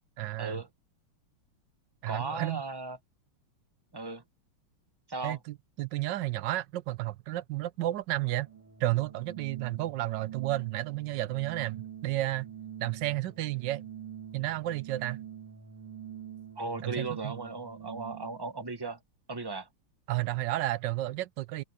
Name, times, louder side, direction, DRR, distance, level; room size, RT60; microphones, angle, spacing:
voice 1, 0.2-0.6 2.0-2.6 5.2-8.5 8.8-12.5 12.8-13.8 14.3-15.2 16.8-17.3 20.1-21.6, right 15 dB, 70° right, 1.1 m, -32 dB
voice 2, 2.1-3.0 3.9-4.2 5.1-5.4 16.6-19.0 19.3-19.7, right 3 dB, 15° right, 1.0 m, -36 dB
Organ, 8.2-18.5, right 9 dB, 85° right, 3.4 m, -45 dB
omnidirectional pair, 2.4 m